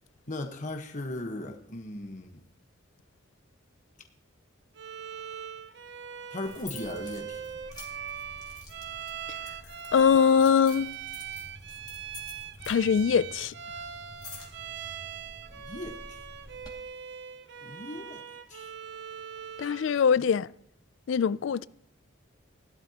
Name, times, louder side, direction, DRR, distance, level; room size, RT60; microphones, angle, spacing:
voice 1, 0.3-2.4 6.3-7.4 15.5-16.2 17.6-18.2 18.5-18.7 20.2-20.3, left 2 dB, 40° left, 1.2 m, -38 dB
Bowed string instrument, 4.7-20.0, right 8 dB, 60° right, 0.7 m, -41 dB
sound 1, 6.4-16.7, left 2 dB, 20° left, 2.2 m, -48 dB
voice 2, 9.9-10.9 12.7-13.5 19.6-20.5 21.1-21.7, left 6 dB, 75° left, 0.3 m, -22 dB
17.0 x 12.0 x 2.9 m
head